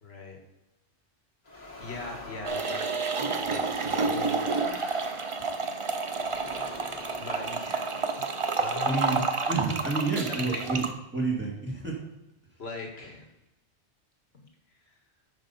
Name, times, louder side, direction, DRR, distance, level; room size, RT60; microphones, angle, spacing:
voice 1, 0.0-0.4 1.5-2.9 3.1-5.0 7.2-8.1 8.5-9.3 10.2-10.7 12.6-13.3, left 3 dB, 65° left, 2 dB, 1.9 m, -40 dB
sound 1, 1.4-8.2 8.9-10.7, left 2 dB, 35° left, 1.6 m, -48 dB
sound 2, 2.4-10.9, right 4 dB, 35° right, 0.6 m, -30 dB
voice 2, 8.8-10.8 11.1-12.0, right 3 dB, 10° right, -2 dB, 1.9 m, -29 dB
9.1 x 5.1 x 5.5 m, 0.92 s
omnidirectional pair, 1.2 m